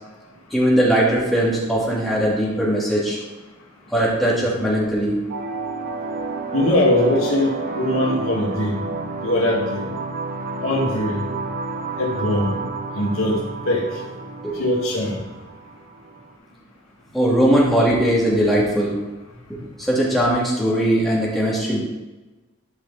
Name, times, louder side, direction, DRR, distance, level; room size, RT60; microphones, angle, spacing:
voice 1, 0.5-3.2 3.9-5.2 14.4-14.6 17.1-18.9 19.8-21.8, right 1 dB, ahead, -6 dB, 2.4 m, -19 dB
sound 1, 5.3-16.3, right 3 dB, 40° right, 0.7 m, -30 dB
voice 2, 6.5-8.7 9.2-9.8 10.6-11.2 12.0-12.5 13.0-13.8 14.6-15.1, left 1 dB, 70° left, -3 dB, 2.2 m, -21 dB
12.0 x 5.4 x 4.1 m, 1.2 s
head